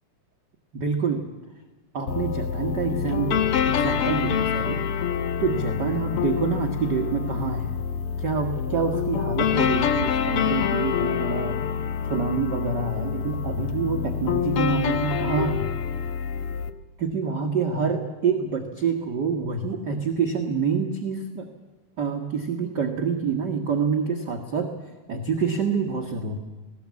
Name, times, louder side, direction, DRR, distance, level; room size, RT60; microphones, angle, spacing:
voice 1, 0.7-1.2 1.9-4.8 5.4-7.8 8.2-11.6 12.0-15.7 17.0-21.5 22.0-24.7 25.1-26.4, right 5 dB, 45° right, 3 dB, 1.5 m, -27 dB
sound 1, 2.1-16.7, left 8 dB, 70° left, 1.4 m, -26 dB
19.5 x 18.0 x 8.4 m, 1.2 s
omnidirectional pair, 3.8 m